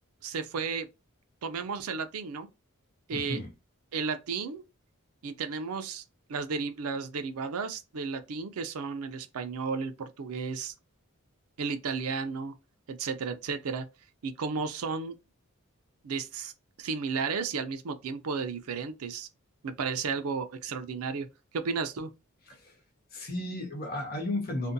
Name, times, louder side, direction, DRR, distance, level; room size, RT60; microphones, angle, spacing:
voice 1, 0.2-0.9 1.4-2.5 3.1-3.4 3.9-4.6 5.2-6.0 6.3-10.7 11.6-12.5 12.9-13.8 14.2-15.1 16.0-16.5 16.8-19.3 19.6-21.3 21.5-22.1, right 5 dB, 85° right, 0.5 m, -33 dB
voice 2, 3.1-3.5 22.5-22.7 23.1-24.7, left 1 dB, 45° left, 0.8 m, -34 dB
2.5 x 2.2 x 2.6 m
head